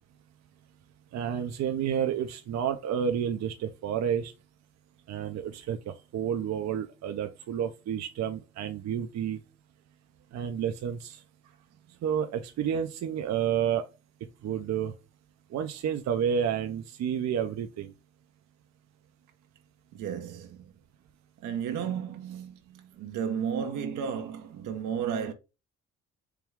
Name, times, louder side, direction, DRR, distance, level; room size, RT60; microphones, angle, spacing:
voice 1, 1.1-4.3 5.1-9.4 10.3-11.2 12.0-13.9 14.4-14.9 15.5-17.9, right 8 dB, 60° right, 0.6 m, -30 dB
voice 2, 19.9-20.7 21.4-25.3, right 8 dB, 85° right, 0.8 m, -33 dB
4.6 x 2.3 x 3.4 m
cardioid pair, 90°, 30 cm